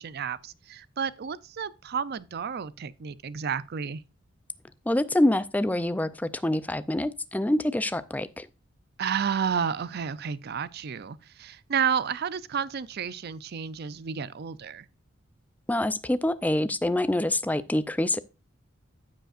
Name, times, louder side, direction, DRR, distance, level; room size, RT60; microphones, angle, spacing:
voice 1, 0.0-4.0 9.0-14.9, right 7 dB, 55° right, 0.5 m, -31 dB
voice 2, 4.9-8.5 15.7-18.2, left 1 dB, 10° left, 0.4 m, -26 dB
15.5 x 5.2 x 2.5 m
head